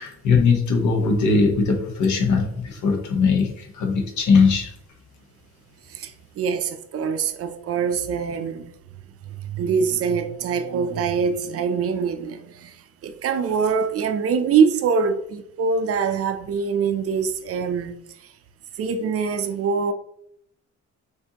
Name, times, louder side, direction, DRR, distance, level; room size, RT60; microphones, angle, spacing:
voice 1, 0.0-4.7, left 4 dB, 70° left, 1.1 m, -20 dB
voice 2, 6.4-8.7 9.3-12.7 13.0-18.0 18.8-19.9, right 6 dB, 50° right, 0.5 m, -24 dB
6.6 x 2.6 x 2.8 m
cardioid pair, 155°, 30 cm